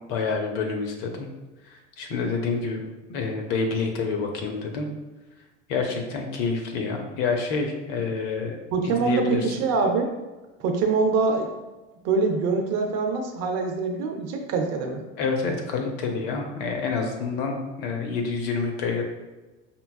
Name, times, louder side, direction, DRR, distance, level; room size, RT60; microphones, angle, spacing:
voice 1, 0.1-1.3 1.7-2.8 3.1-4.9 5.7-8.6 8.8-9.5 15.2-19.0, left 4 dB, 55° left, 3 dB, 0.8 m, -28 dB
voice 2, 8.7-10.1 10.6-11.5 12.0-15.0, right 4 dB, 45° right, 4 dB, 0.6 m, -24 dB
5.3 x 2.2 x 2.3 m, 1.2 s
hypercardioid pair, 75°, 37 cm